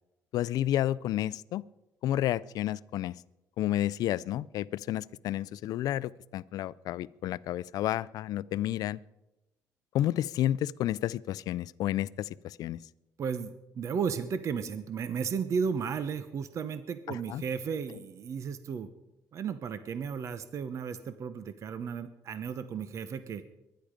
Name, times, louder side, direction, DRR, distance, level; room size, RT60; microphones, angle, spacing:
voice 1, 0.3-1.6 2.0-3.2 3.6-9.0 9.9-12.8 17.1-17.4, left 13 dB, 70° left, 20 dB, 0.4 m, -31 dB
voice 2, 13.2-18.9 19.3-23.4, right 6 dB, 50° right, 11 dB, 0.9 m, -34 dB
23.0 x 10.5 x 5.1 m, 0.97 s
cardioid pair, 115°, 7 cm